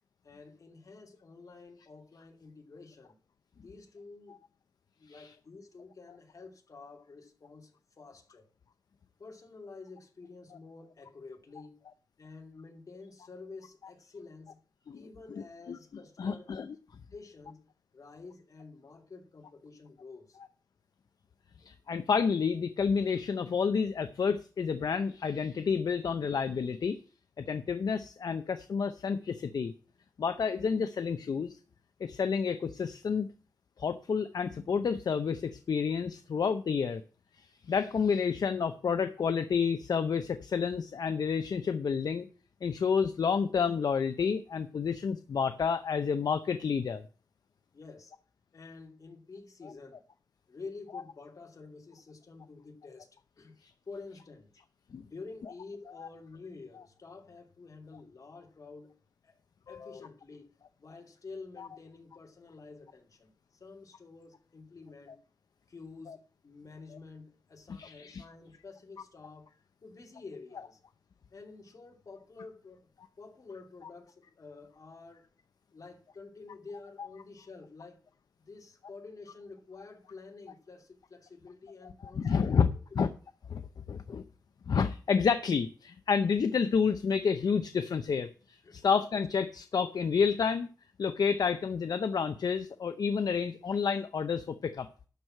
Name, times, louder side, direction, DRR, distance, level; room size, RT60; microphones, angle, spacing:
voice 1, 0.2-3.1 3.6-4.4 5.0-7.7 8.0-8.5 9.2-11.8 12.2-14.6 14.9-16.6 17.1-17.7 17.9-20.4 47.7-48.1 48.5-50.0 50.5-53.1 53.4-53.5 53.9-54.5 55.1-58.9 59.2-59.4 59.7-65.2 65.7-69.5 69.8-70.8 71.3-72.9 73.2-75.3 75.7-78.0 78.4-82.8 88.6-88.9, left 4 dB, 60° left, 2.8 m, -49 dB
voice 2, 15.3-15.8 16.2-16.7 21.6-27.0 27.4-29.7 30.2-31.6 32.0-33.3 33.8-37.0 37.4-42.3 42.6-47.0 54.9-55.0 59.7-60.0 61.6-61.7 66.1-66.2 67.8-68.2 82.2-82.7 83.0-83.1 83.5-83.6 83.9-84.2 84.7-90.7 91.0-94.9, left 6 dB, 80° left, 0.6 m, -29 dB
12.0 x 4.7 x 7.7 m
wide cardioid pair, 120°, 7 cm